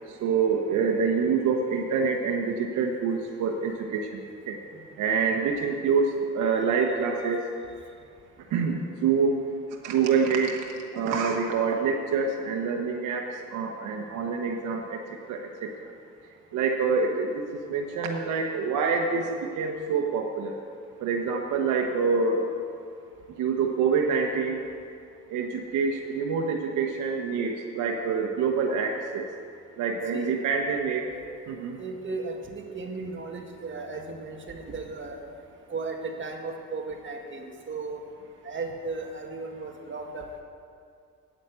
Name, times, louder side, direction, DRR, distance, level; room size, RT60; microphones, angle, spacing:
voice 1, 0.2-4.6 5.0-7.4 8.5-9.4 9.8-10.6 10.9-15.0 15.3-15.7 16.5-17.4 17.7-20.5 21.0-22.4 23.4-24.6 25.3-29.2 29.8-31.0 31.5-31.8, right 5 dB, 85° right, 1 dB, 1.1 m, -26 dB
voice 2, 29.9-30.3 31.8-35.2 35.7-38.0 38.4-40.4, right 3 dB, 40° right, 2 dB, 1.9 m, -36 dB
9.0 x 8.9 x 8.1 m, 2.3 s
cardioid pair, 90°, 30 cm